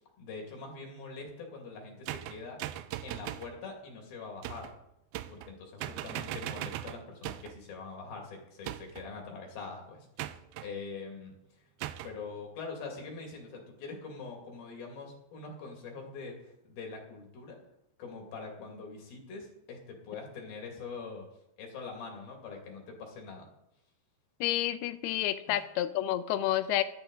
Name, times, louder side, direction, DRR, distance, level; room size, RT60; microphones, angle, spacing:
voice 1, 0.2-2.6 3.0-4.7 5.3-10.1 10.6-11.7 12.0-17.6 18.0-21.3 21.6-23.5, left 4 dB, 60° left, 1 dB, 4.0 m, -43 dB
sound 1, 2.1-3.5 4.4-4.8 5.1-5.5 5.8-7.6 8.6-9.1 10.2-10.7 11.8-12.2, right 13 dB, 85° right, 2.1 m, -39 dB
voice 2, 24.4-26.8, left 13 dB, 80° left, 12 dB, 2.5 m, -29 dB
14.5 x 12.0 x 4.0 m, 0.81 s
omnidirectional pair, 4.9 m